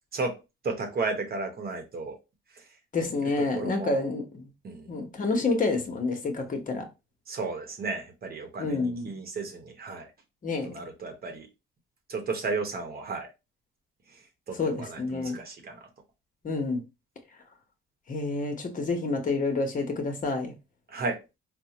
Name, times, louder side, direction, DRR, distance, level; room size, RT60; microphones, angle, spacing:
voice 1, 0.1-2.2 2.5-4.0 4.6-4.9 7.3-10.1 10.6-11.5 12.1-13.3 14.1-15.9 20.9-21.2, right 3 dB, 50° right, 0.9 m, -34 dB
voice 2, 2.9-4.5 4.9-6.9 8.6-9.1 10.4-10.8 14.6-15.4 16.4-16.8 18.1-20.5, left 3 dB, 40° left, 1.1 m, -28 dB
3.9 x 2.2 x 2.9 m
cardioid pair, 90°, 20 cm